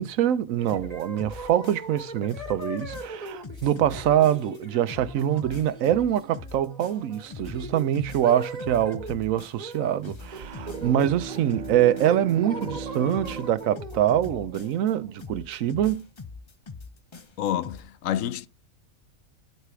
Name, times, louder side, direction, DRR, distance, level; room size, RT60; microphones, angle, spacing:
voice 1, 0.0-16.0, right 11 dB, 80° right, 1.1 m, -24 dB
sound 1, 0.6-9.1 9.6-10.0 10.3-11.6 12.0-15.8, right 2 dB, 30° right, 2.2 m, -40 dB
sound 2, 0.7-2.0 2.3-4.6 4.9-9.8 10.0-12.3 12.6-14.9 15.2-17.8, left 4 dB, 30° left, 0.6 m, -42 dB
Bowed string instrument, 10.2-14.5, right 6 dB, 45° right, 0.8 m, -38 dB
voice 2, 17.4-18.5, left 11 dB, 75° left, 1.0 m, -28 dB
11.5 x 4.2 x 4.8 m
omnidirectional pair, 1.4 m